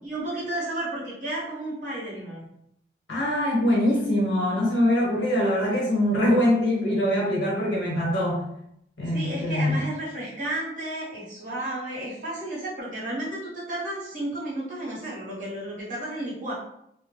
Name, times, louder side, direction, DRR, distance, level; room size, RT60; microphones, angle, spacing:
voice 1, 0.0-2.5 9.0-16.5, right 1 dB, 40° right, -6 dB, 1.0 m, -32 dB
voice 2, 3.1-8.4 9.0-9.9, left 1 dB, 80° left, -4 dB, 1.0 m, -23 dB
2.2 x 2.1 x 3.1 m, 0.75 s
head